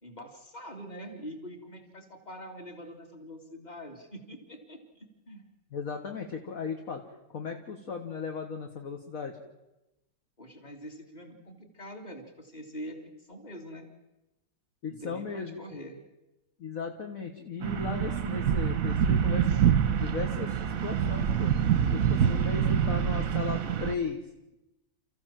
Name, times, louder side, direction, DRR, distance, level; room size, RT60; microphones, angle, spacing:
voice 1, 0.0-5.5 10.4-13.0 13.3-13.8 14.9-16.0, equal, 20° left, 4 dB, 2.9 m, -44 dB
voice 2, 5.7-7.0 7.3-9.4 14.8-15.6 16.6-19.6 20.0-21.5 21.9-24.2, left 5 dB, 45° left, 3 dB, 1.8 m, -36 dB
sound 1, 17.6-23.9, right 8 dB, 50° right, 1.2 m, -26 dB
29.5 x 15.0 x 7.5 m, 0.97 s
omnidirectional pair, 2.1 m